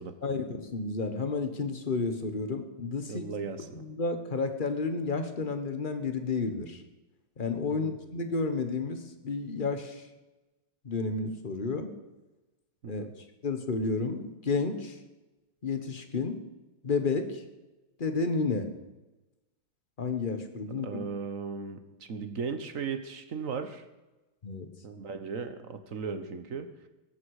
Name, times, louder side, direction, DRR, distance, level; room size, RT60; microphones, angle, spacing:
voice 1, 0.2-3.3 3.7-6.8 7.4-10.0 10.8-11.9 12.9-13.0 13.4-15.0 15.6-16.4 16.8-17.4 18.0-18.7 20.0-21.0 24.4-24.7, left 4 dB, 30° left, 7 dB, 1.2 m, -31 dB
voice 2, 3.1-3.8 7.7-8.0 12.8-13.1 20.8-23.8 24.8-26.7, right 5 dB, 45° right, 9 dB, 1.4 m, -37 dB
18.0 x 14.5 x 4.9 m, 1.1 s
omnidirectional pair, 2.1 m